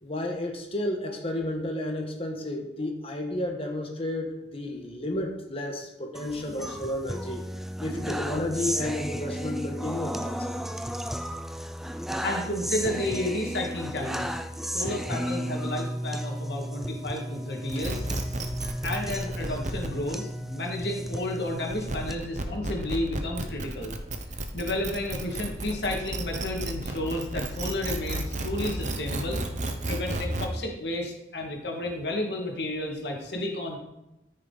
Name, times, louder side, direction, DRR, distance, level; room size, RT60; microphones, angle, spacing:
voice 1, 0.0-7.4 7.8-10.6 17.7-17.8, left 1 dB, 30° left, 2 dB, 1.4 m, -32 dB
sound 1, 6.1-22.1, equal, ahead, 0.4 m, -34 dB
voice 2, 12.2-14.3 14.7-18.0 18.8-24.0 24.5-29.4 29.9-33.8, left 1 dB, 70° left, 0 dB, 2.2 m, -32 dB
sound 2, 17.7-30.5, right 2 dB, 45° right, 1.0 m, -33 dB
14.0 x 6.4 x 4.1 m, 0.94 s
head